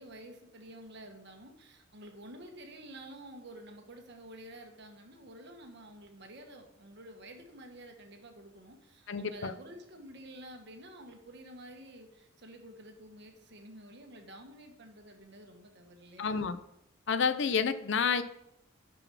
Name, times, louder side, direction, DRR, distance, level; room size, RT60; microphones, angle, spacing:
voice 1, 0.0-16.5, right 1 dB, 55° right, 4 dB, 1.3 m, -50 dB
voice 2, 9.1-9.5 16.2-16.6 17.1-18.2, left 6 dB, 60° left, 12 dB, 0.5 m, -29 dB
6.6 x 6.2 x 6.0 m, 0.82 s
head